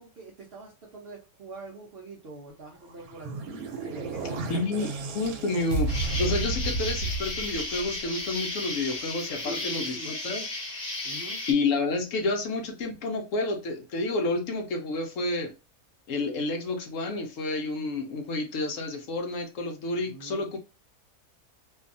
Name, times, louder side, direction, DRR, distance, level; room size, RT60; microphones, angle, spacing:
voice 1, 0.0-3.5 3.8-4.9 9.4-10.1 11.0-11.4 20.0-20.5, right 2 dB, 65° right, 0.6 m, -44 dB
sound 1, 2.8-8.2, right 3 dB, 80° right, 1.1 m, -32 dB
voice 2, 4.5-10.5 11.5-15.5 16.1-20.6, left 3 dB, 65° left, 0.9 m, -30 dB
Insect, 5.9-11.5, left 2 dB, 35° left, 0.8 m, -34 dB
2.6 x 2.3 x 2.4 m
omnidirectional pair, 1.6 m